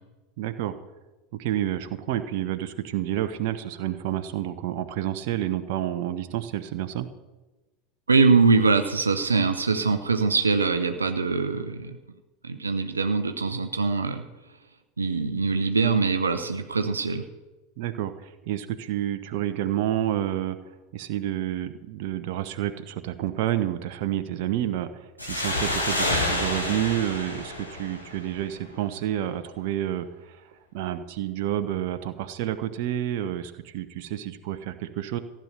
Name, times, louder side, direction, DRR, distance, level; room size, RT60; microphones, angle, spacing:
voice 1, 0.4-0.7 1.4-7.1 17.8-20.6 20.9-35.2, right 12 dB, 55° right, 9 dB, 0.9 m, -29 dB
voice 2, 8.1-11.9 12.4-14.2 15.0-17.2, right 4 dB, 80° right, 7 dB, 0.8 m, -23 dB
sound 1, 25.2-28.6, left 1 dB, 90° left, 2.6 m, -28 dB
15.0 x 9.0 x 6.6 m, 1.1 s
figure-of-eight pair, 80°, 0 cm